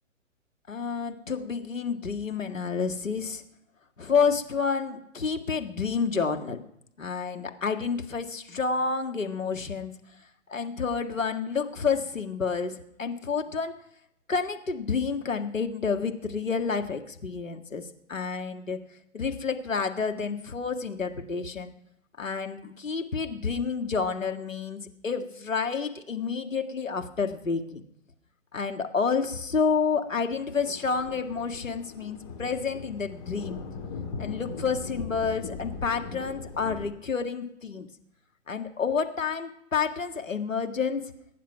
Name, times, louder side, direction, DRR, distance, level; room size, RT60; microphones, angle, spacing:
voice 1, 0.7-3.4 4.0-6.6 7.0-9.9 10.5-13.7 14.3-18.8 19.1-21.7 22.2-27.8 28.5-33.6 34.2-37.9 38.5-41.1, left 5 dB, 80° left, 6 dB, 1.9 m, -29 dB
Thunder, 30.0-36.9, left 5 dB, 35° left, 2.5 m, -39 dB
21.5 x 10.0 x 5.9 m, 0.76 s
figure-of-eight pair, 125°, 38 cm